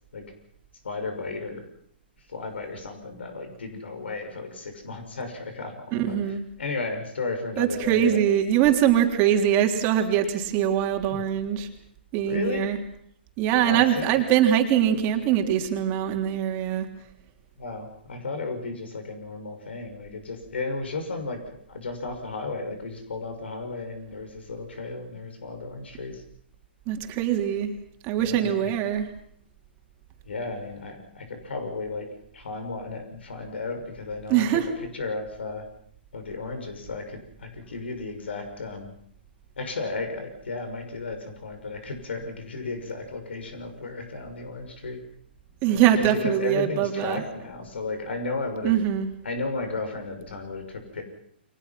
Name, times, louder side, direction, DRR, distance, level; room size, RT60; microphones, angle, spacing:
voice 1, 0.8-1.6 2.3-8.2 11.1-11.2 12.3-12.7 13.6-14.2 17.6-26.2 28.2-28.7 30.2-32.1 32.3-35.7 36.1-39.0 39.6-45.0 45.7-48.8 49.2-51.1, left 3 dB, 75° left, 6 dB, 6.3 m, -34 dB
voice 2, 5.9-6.4 7.6-11.7 12.1-12.8 13.4-16.9 26.9-27.7 28.0-29.1 34.3-34.7 45.6-47.2 48.6-49.1, right 10 dB, 35° right, 4 dB, 3.4 m, -23 dB
30.0 x 24.0 x 6.0 m, 0.66 s
hypercardioid pair, 130°, 6 cm